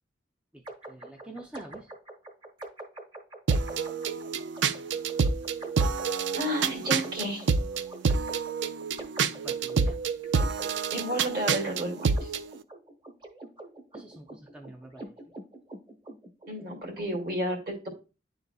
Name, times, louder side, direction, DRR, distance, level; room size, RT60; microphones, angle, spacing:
sound 1, 0.7-17.4, right 2 dB, 25° right, 1.0 m, -45 dB
voice 1, 0.9-1.9 9.2-10.0 13.9-15.3, right 1 dB, 5° right, 1 dB, 0.5 m, -46 dB
sound 2, 3.5-12.4, right 5 dB, 70° right, 0.4 m, -28 dB
voice 2, 6.3-7.5 10.9-12.3 16.5-17.9, equal, 50° right, 2 dB, 2.1 m, -31 dB
10.5 x 3.9 x 2.3 m, 0.31 s
head